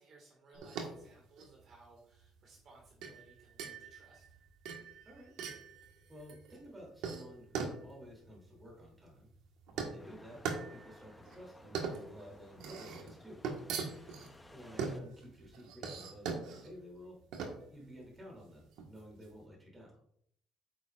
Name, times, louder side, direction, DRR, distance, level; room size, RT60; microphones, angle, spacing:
voice 1, 0.0-4.4 10.1-10.4 14.6-14.9, right 2 dB, 50° right, 0 dB, 1.8 m, -61 dB
sound 1, 0.5-19.3, right 5 dB, 85° right, 1.4 m, -42 dB
voice 2, 6.1-9.3 9.7-10.4 10.7-13.4 14.5-17.2 17.7-20.0, equal, 15° right, -1 dB, 2.8 m, -52 dB
sound 2, 10.0-15.0, left 1 dB, 10° left, 0.7 m, -58 dB
9.0 x 6.7 x 2.4 m, 0.68 s
cardioid pair, 135°, 0 cm